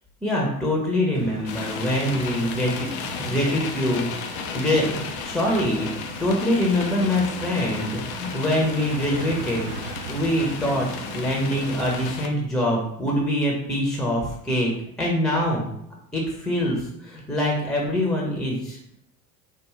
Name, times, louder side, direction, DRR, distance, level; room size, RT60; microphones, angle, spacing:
voice 1, 0.2-5.9 6.2-9.7 10.1-10.9 11.1-14.7 15.0-15.7 16.1-18.8, left 1 dB, ahead, -2 dB, 0.9 m, -24 dB
sound 1, 1.1-12.2, right 5 dB, 80° right, 0.6 m, -40 dB
sound 2, 1.5-12.3, left 6 dB, 50° left, 0.6 m, -34 dB
3.6 x 2.4 x 3.2 m, 0.73 s
figure-of-eight pair, 70°, 45 cm